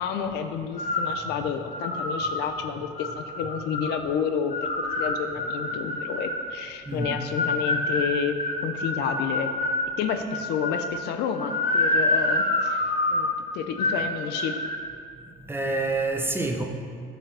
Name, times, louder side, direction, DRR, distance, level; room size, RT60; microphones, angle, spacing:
voice 1, 0.0-4.5 5.0-9.5 10.0-12.8 13.1-13.3 13.5-14.6, left 7 dB, 80° left, 7 dB, 0.5 m, -30 dB
sound 1, 0.8-1.2 1.7-2.3 3.0-3.9 4.5-6.4 7.0-9.8 10.3-10.9 11.3-13.3 13.8-14.1 14.3-14.8, left 2 dB, 55° left, 1.2 m, -27 dB
voice 2, 6.9-7.2 15.4-16.6, right 2 dB, 15° right, 3 dB, 0.7 m, -27 dB
10.0 x 3.9 x 3.3 m, 2.3 s
cardioid pair, 110°, 17 cm